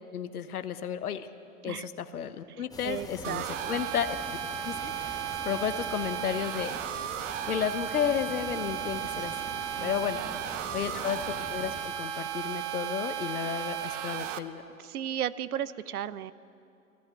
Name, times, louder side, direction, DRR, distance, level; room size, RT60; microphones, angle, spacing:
voice 1, 0.1-1.3 1.6-4.2 4.6-6.8 7.4-10.2 10.7-14.6, left 8 dB, 90° left, 11 dB, 0.8 m, -33 dB
voice 2, 2.6-3.7 9.8-9.9 10.2-10.7 14.8-16.3, right 10 dB, 90° right, 18 dB, 0.6 m, -36 dB
sound 1, 2.7-11.9, left 3 dB, 10° left, 1.0 m, -45 dB
sound 2, 3.2-14.4, right 11 dB, 55° right, 0.8 m, -35 dB
13.5 x 11.5 x 8.5 m, 2.6 s
hypercardioid pair, 110°, 43 cm